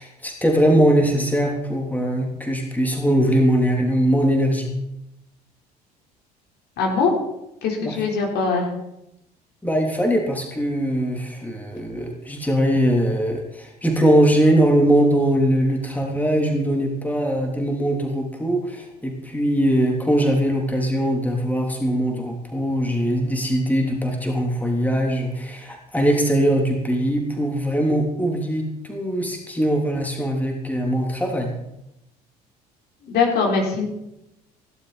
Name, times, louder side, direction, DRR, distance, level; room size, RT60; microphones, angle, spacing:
voice 1, 0.0-4.7 7.8-8.0 9.6-31.5, equal, 10° left, 1 dB, 3.3 m, -21 dB
voice 2, 6.8-7.1 7.6-8.7 33.0-33.8, left 4 dB, 55° left, 0 dB, 4.2 m, -21 dB
16.5 x 12.0 x 4.3 m, 0.86 s
figure-of-eight pair, 60°, 20 cm